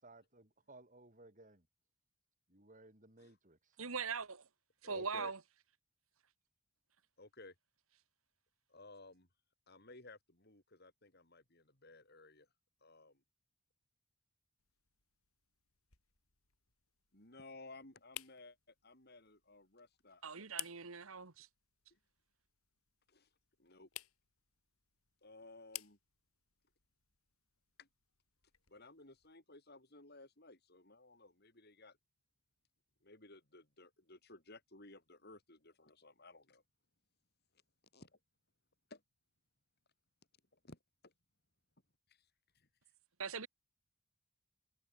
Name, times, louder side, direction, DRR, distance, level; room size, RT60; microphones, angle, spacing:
voice 1, 0.0-1.7 2.5-3.8, right 2 dB, 35° right, 6.2 m, -60 dB
voice 2, 3.8-4.4 4.8-5.4 20.2-21.5 43.2-43.5, right 5 dB, 75° right, 1.7 m, -41 dB
voice 3, 4.8-5.3 7.2-7.6 8.7-9.3 9.7-12.5 12.8-13.2 17.1-20.2 21.9-22.0 23.1-23.3 23.6-23.9 25.2-26.0 27.8-27.9 28.7-32.0 33.0-36.6 37.9-38.1 38.9-39.0 40.6-40.8 41.0-41.1 42.1-42.7, left 2 dB, 50° left, 5.9 m, -57 dB
sound 1, 14.6-29.4, left 14 dB, 90° left, 5.7 m, -56 dB
head